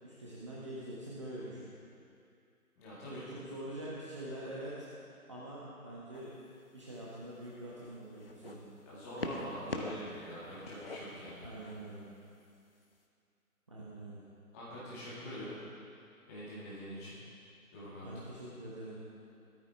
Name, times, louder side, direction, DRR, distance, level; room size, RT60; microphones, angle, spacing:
voice 1, 0.0-1.7 3.1-4.9 5.3-6.3 6.7-8.6 11.4-12.1 13.7-14.3 18.0-19.0, right 1 dB, 20° right, -8 dB, 1.1 m, -44 dB
voice 2, 2.8-3.2 8.9-11.5 14.5-15.6 16.3-17.2 17.7-18.0, equal, 10° left, -9 dB, 1.9 m, -44 dB
sound 1, 6.1-6.5 7.2-8.6 9.2-10.1 10.4-11.8 12.7-12.8, left 2 dB, 40° left, 1.0 m, -42 dB
15.5 x 13.5 x 3.5 m, 2.5 s
figure-of-eight pair, 155°, 46 cm